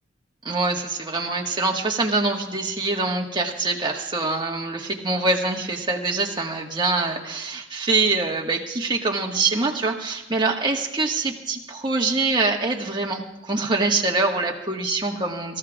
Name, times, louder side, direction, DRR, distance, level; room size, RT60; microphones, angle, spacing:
voice 1, 0.4-15.6, right 3 dB, 25° right, 0 dB, 1.7 m, -24 dB
24.5 x 14.5 x 2.5 m, 0.97 s
head